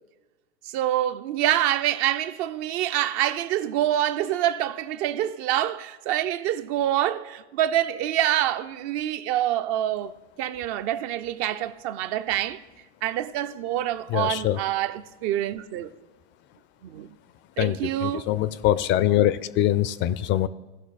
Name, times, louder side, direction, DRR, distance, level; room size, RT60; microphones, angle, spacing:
voice 1, 0.6-12.6 13.0-15.9 16.8-17.1 17.6-18.3, right 12 dB, 50° right, 0.7 m, -26 dB
voice 2, 14.1-14.6 17.6-20.5, left 13 dB, 35° left, 0.4 m, -23 dB
16.5 x 5.9 x 4.1 m
hypercardioid pair, 95°, 34 cm